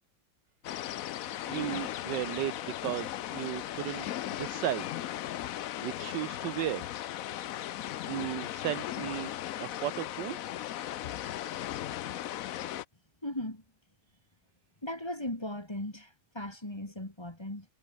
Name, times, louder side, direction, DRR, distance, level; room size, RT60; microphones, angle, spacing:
sound 1, 0.6-12.8, left 12 dB, 85° left, 0.7 m, -37 dB
voice 1, 1.5-4.1 4.4-4.9 5.8-6.9 8.1-9.3 9.6-10.4, right 13 dB, 70° right, 1.1 m, -35 dB
voice 2, 13.2-13.6 14.8-17.7, left 1 dB, 15° left, 2.3 m, -37 dB
omnidirectional pair, 2.3 m